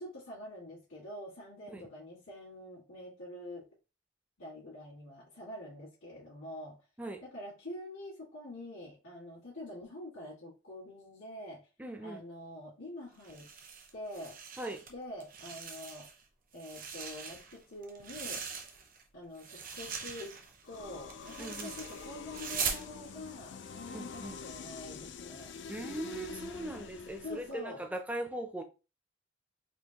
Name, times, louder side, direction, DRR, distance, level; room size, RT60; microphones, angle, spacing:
voice 1, 0.0-3.6 4.4-6.8 7.2-11.6 12.0-13.5 13.9-14.4 14.9-16.1 16.5-18.4 19.1-25.6 27.2-27.8, left 1 dB, 85° left, 1.9 m, -46 dB
voice 2, 11.8-12.2 14.6-14.8 21.4-21.7 23.9-24.4 25.7-28.6, right 1 dB, 5° right, 0.4 m, -40 dB
sound 1, 13.2-14.9 15.2-16.2 16.5-19.0 19.4-22.9, right 6 dB, 45° right, 0.6 m, -41 dB
sound 2, 20.6-27.6, left 5 dB, 60° left, 0.4 m, -46 dB
4.4 x 2.7 x 2.9 m
head